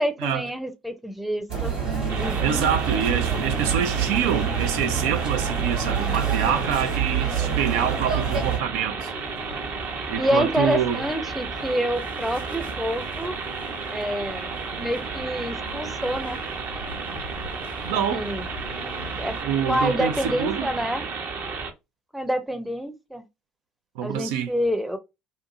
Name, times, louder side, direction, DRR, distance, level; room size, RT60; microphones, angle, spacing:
voice 1, 0.0-1.8 2.1-2.6 10.2-13.4 13.9-14.5 14.8-16.4 17.9-18.5 19.2-19.4 19.7-21.1 22.1-23.2 24.0-25.0, equal, ahead, 0.6 m, -27 dB
sound 1, 1.5-8.6, right 7 dB, 85° right, 1.1 m, -26 dB
sound 2, 2.1-21.7, right 4 dB, 50° right, 0.7 m, -33 dB
voice 2, 2.4-9.1 10.1-11.0 17.8-18.3 19.4-20.7 24.0-24.5, right 8 dB, 65° right, 0.4 m, -26 dB
sound 3, 9.1-19.4, left 5 dB, 80° left, 0.5 m, -45 dB
2.6 x 2.5 x 2.6 m
figure-of-eight pair, 55°, 5 cm